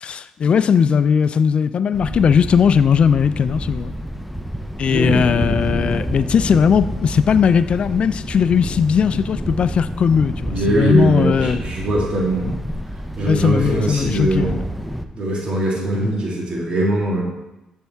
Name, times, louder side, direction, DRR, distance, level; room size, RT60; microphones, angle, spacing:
voice 1, 0.0-3.9 4.8-11.6 13.3-14.6, left 7 dB, 55° left, 14 dB, 0.4 m, -18 dB
Thunder, 1.9-15.0, equal, ahead, 0.6 m, -28 dB
voice 2, 4.9-5.4 10.5-12.5 13.2-14.5 15.1-17.2, right 2 dB, 50° right, -3 dB, 2.2 m, -21 dB
6.9 x 6.6 x 3.5 m, 0.97 s
supercardioid pair, 65°, 2 cm